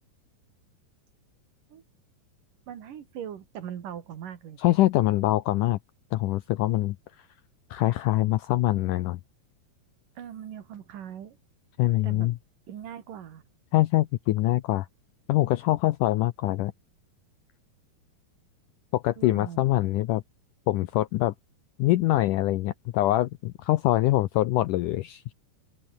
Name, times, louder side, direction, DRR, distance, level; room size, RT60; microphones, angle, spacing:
voice 1, 2.7-4.6 10.2-11.4 12.0-12.3 12.7-13.4 19.2-19.6, right 9 dB, 60° right, 3.4 m, -40 dB
voice 2, 4.6-5.8 6.1-7.0 7.7-9.2 11.8-12.3 13.7-14.9 15.3-16.7 18.9-20.2 20.7-21.3 21.8-25.3, left 16 dB, 80° left, 1.9 m, -24 dB
open air
omnidirectional pair, 4.4 m